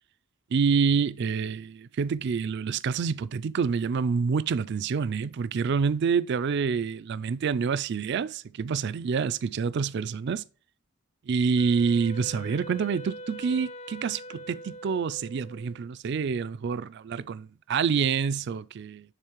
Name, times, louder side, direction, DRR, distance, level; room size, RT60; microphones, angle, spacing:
voice 1, 0.5-10.4 11.3-19.1, right 6 dB, 60° right, 0.4 m, -27 dB
Wind instrument woodwind instrument, 11.6-15.9, right 1 dB, 35° left, 0.4 m, -43 dB
9.9 x 3.7 x 3.0 m
head